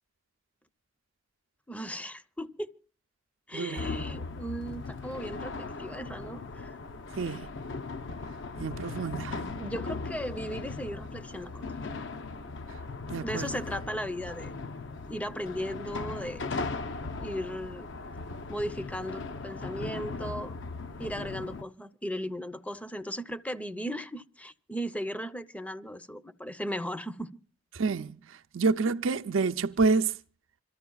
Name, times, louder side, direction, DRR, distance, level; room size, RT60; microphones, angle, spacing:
voice 1, 1.7-2.7 3.5-6.8 9.6-11.7 13.2-14.5 15.1-16.4 17.2-17.9 18.5-20.5 21.0-27.3, equal, 5° left, 0.6 m, -36 dB
voice 2, 3.5-3.9 7.2-7.5 8.6-9.4 13.1-13.6 27.7-28.2 28.5-30.1, right 4 dB, 80° right, 0.6 m, -28 dB
sound 1, 3.8-21.6, left 3 dB, 70° left, 0.7 m, -38 dB
26.5 x 13.0 x 2.3 m
head